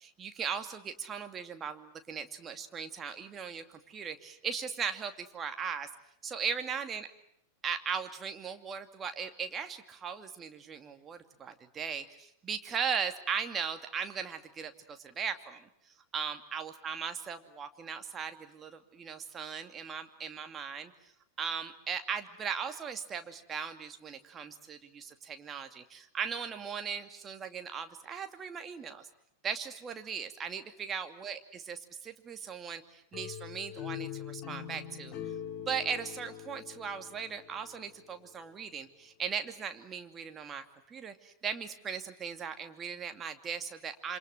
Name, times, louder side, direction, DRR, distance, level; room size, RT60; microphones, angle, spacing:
voice 1, 0.2-5.9 6.2-7.1 7.6-15.7 16.1-20.9 21.4-29.1 29.4-31.8 32.0-35.1 35.6-44.2, right 6 dB, 25° right, 7 dB, 2.5 m, -38 dB
sound 1, 33.1-38.0, left 10 dB, 30° left, 3.1 m, -43 dB
28.0 x 26.5 x 7.8 m, 0.72 s
figure-of-eight pair, 90°, 0 cm